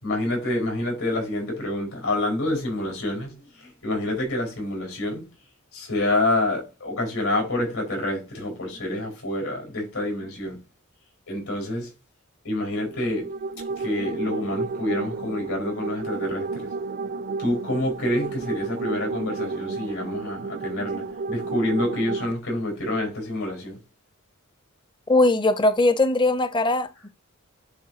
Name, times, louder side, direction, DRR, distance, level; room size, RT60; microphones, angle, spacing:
voice 1, 0.0-5.2 5.7-10.6 11.3-11.9 12.4-13.3 13.8-16.8 17.4-23.8, left 1 dB, 85° left, 4.9 m, -27 dB
sound 1, 12.9-22.3, right 4 dB, 50° right, 0.4 m, -32 dB
voice 2, 25.1-26.9, left 2 dB, 20° left, 0.6 m, -20 dB
10.5 x 4.5 x 2.8 m
head